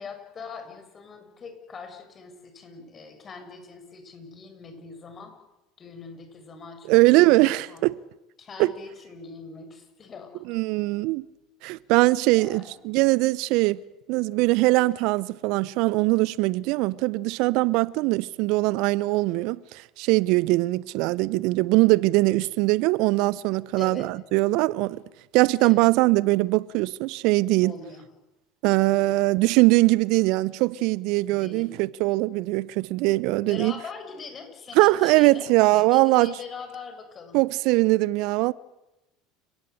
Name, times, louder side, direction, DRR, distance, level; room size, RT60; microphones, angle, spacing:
voice 1, 0.0-5.4 5.8-7.8 8.4-10.3 12.3-13.0 23.8-24.2 25.6-25.9 27.6-28.1 28.8-29.2 31.2-31.7 33.4-37.4, left 4 dB, 35° left, 6.5 m, -42 dB
voice 2, 6.9-7.9 8.6-8.7 10.5-11.2 11.6-13.8 14.1-25.0 25.3-27.7 28.6-33.7 34.8-36.3 37.3-38.5, right 21 dB, 60° right, 0.8 m, -21 dB
29.5 x 17.0 x 8.2 m
hypercardioid pair, 70°, 0 cm